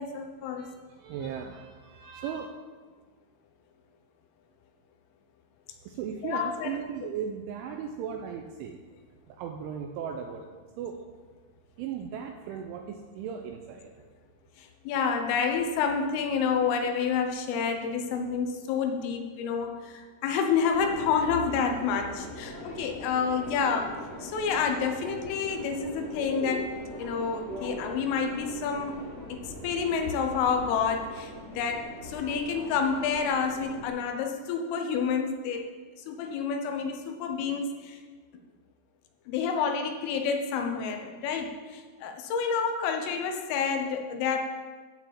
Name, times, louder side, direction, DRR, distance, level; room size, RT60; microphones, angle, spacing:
voice 1, 0.0-0.7 2.0-2.2 6.2-6.8 14.6-29.0 29.3-35.7 36.0-38.0 39.3-44.4, left 6 dB, 80° left, 5 dB, 3.4 m, -29 dB
voice 2, 0.6-2.5 5.8-8.8 9.3-10.4 10.8-11.0 11.8-13.9, right 8 dB, 80° right, 3 dB, 2.9 m, -37 dB
Subway metro underground, 20.7-33.9, equal, 25° left, 2.3 m, -41 dB
13.0 x 4.9 x 8.3 m, 1.4 s
omnidirectional pair, 6.0 m